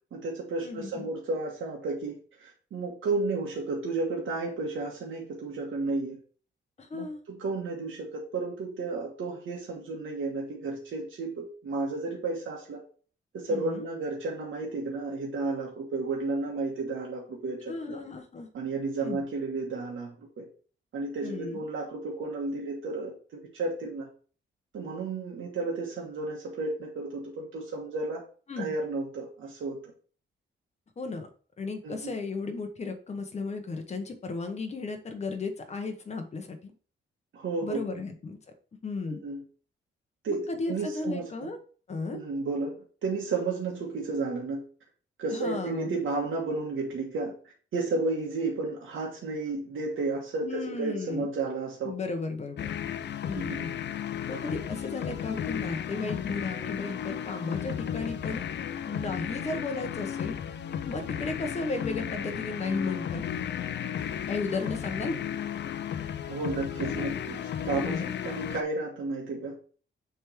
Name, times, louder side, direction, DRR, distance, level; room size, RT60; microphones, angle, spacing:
voice 1, 0.1-6.2 6.9-12.8 13.3-18.0 18.5-20.5 20.9-24.1 24.7-28.2 28.6-29.8 31.8-32.1 37.3-37.8 39.0-39.4 40.2-41.5 42.1-42.7 43.0-44.6 45.2-47.3 47.7-51.9 53.3-53.7 61.1-61.2 66.2-69.6, right 3 dB, 80° right, -2 dB, 1.5 m, -32 dB
voice 2, 0.6-1.1 6.8-7.2 13.5-13.8 17.7-18.5 19.0-19.2 21.2-21.6 28.5-28.7 31.0-31.3 31.6-36.7 37.6-38.4 38.8-39.2 40.5-41.6 41.9-42.2 45.3-45.9 50.4-51.3 51.8-52.7 53.2-53.7 54.3-58.4 58.8-60.3 60.8-63.2 64.3-65.2 67.7-68.1, left 3 dB, 35° left, 6 dB, 1.0 m, -34 dB
sound 1, 52.6-68.6, left 9 dB, 60° left, 0.5 m, -34 dB
7.0 x 3.5 x 4.5 m, 0.41 s
wide cardioid pair, 155°, 20 cm